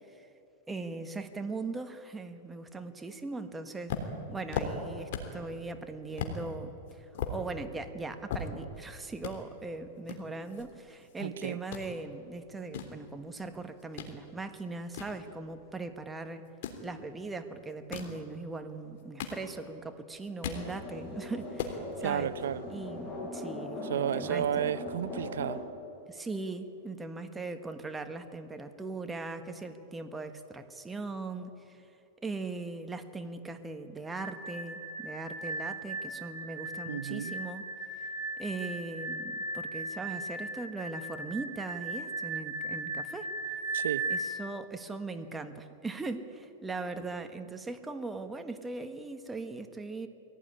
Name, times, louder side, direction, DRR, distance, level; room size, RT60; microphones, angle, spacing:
voice 1, 0.7-4.0 4.3-16.4 16.8-22.3 22.7-24.7 26.1-31.8 32.2-37.6 38.4-43.3 44.1-50.1, right 3 dB, 10° right, 7 dB, 1.4 m, -40 dB
sound 1, 3.9-5.4 5.8-5.9 6.2-6.4 6.9-8.9 9.2-9.4 10.1-11.3 11.5-11.9 12.4-14.1 14.5-15.8 16.5-16.9 17.7-18.2 18.8-19.8 20.1-20.7 21.1-21.2 21.4-21.8, left 6 dB, 65° left, 3.5 m, -38 dB
voice 2, 11.2-11.6 22.0-22.6 23.8-25.6 36.9-37.4 43.7-44.0, right 9 dB, 85° right, 15 dB, 0.7 m, -32 dB
sound 2, 20.4-25.6, left 1 dB, 15° left, 7.8 m, -40 dB
sound 3, 34.1-44.2, right 2 dB, 30° right, 6.8 m, -37 dB
22.0 x 17.0 x 9.9 m, 2.8 s
supercardioid pair, 140°, 0 cm